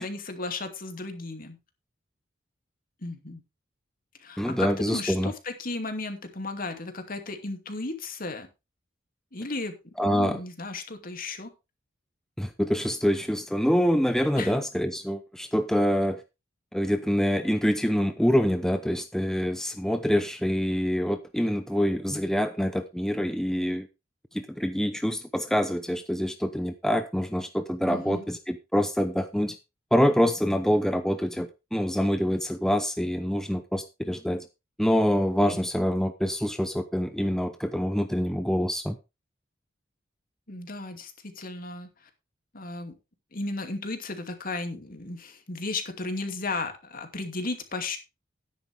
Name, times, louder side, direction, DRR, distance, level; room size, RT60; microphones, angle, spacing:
voice 1, 0.0-1.6 3.0-3.4 4.2-8.5 9.3-11.5 14.4-14.5 27.8-28.2 35.5-35.6 40.5-42.1 42.5-42.9 43.3-48.0, left 3 dB, 50° left, 7 dB, 2.5 m, -35 dB
voice 2, 4.4-5.3 10.0-10.4 12.4-16.2 16.7-23.9 24.3-29.6 29.9-34.5 34.8-39.0, equal, 5° left, 8 dB, 0.7 m, -26 dB
12.0 x 10.5 x 3.4 m, 0.26 s
head